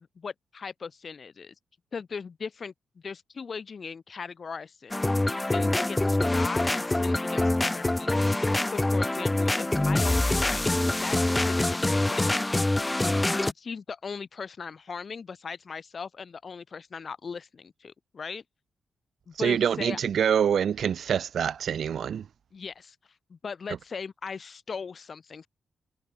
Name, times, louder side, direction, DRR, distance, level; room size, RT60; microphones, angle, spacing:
voice 1, 0.0-1.5 1.9-5.0 5.5-8.1 8.7-10.2 10.4-12.4 13.0-18.4 19.3-20.0 22.5-23.0 23.3-25.5, left 5 dB, 55° left, 4.5 m, -39 dB
sound 1, 4.9-13.5, left 2 dB, 20° left, 1.1 m, -25 dB
voice 2, 19.4-22.3, right 8 dB, 70° right, 0.6 m, -25 dB
supercardioid pair, 55°, 0 cm